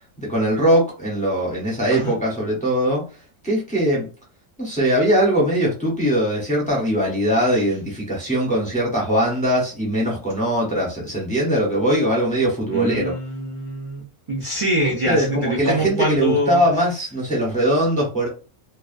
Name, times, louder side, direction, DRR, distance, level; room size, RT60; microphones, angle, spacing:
voice 1, 0.2-3.0 3.4-4.0 4.6-13.1 15.1-18.3, equal, 10° left, -3 dB, 0.6 m, -21 dB
voice 2, 12.7-16.6, right 1 dB, 45° right, -4 dB, 0.4 m, -24 dB
2.4 x 2.2 x 2.4 m, 0.34 s
omnidirectional pair, 1.4 m